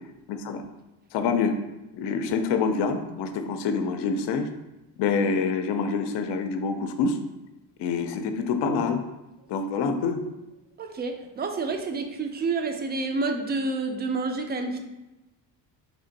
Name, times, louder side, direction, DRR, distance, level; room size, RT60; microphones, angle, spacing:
voice 1, 0.3-0.6 1.1-1.6 1.9-4.5 5.0-7.2 7.8-9.0 9.5-10.2, left 5 dB, 65° left, 7 dB, 0.6 m, -26 dB
voice 2, 10.8-14.8, right 3 dB, 25° right, 5 dB, 0.3 m, -29 dB
3.3 x 2.5 x 3.9 m, 0.99 s
cardioid pair, 100°, 44 cm